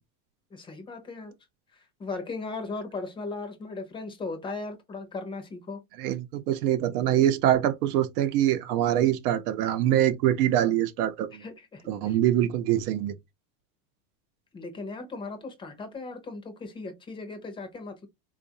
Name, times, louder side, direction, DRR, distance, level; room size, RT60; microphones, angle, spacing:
voice 1, 0.5-1.3 1.7-5.8 11.3-12.2 14.5-18.1, left 3 dB, 10° left, 0.5 m, -37 dB
voice 2, 6.0-11.4 11.9-13.1, right 12 dB, 85° right, 0.8 m, -24 dB
3.8 x 2.4 x 2.7 m
supercardioid pair, 155°, 44 cm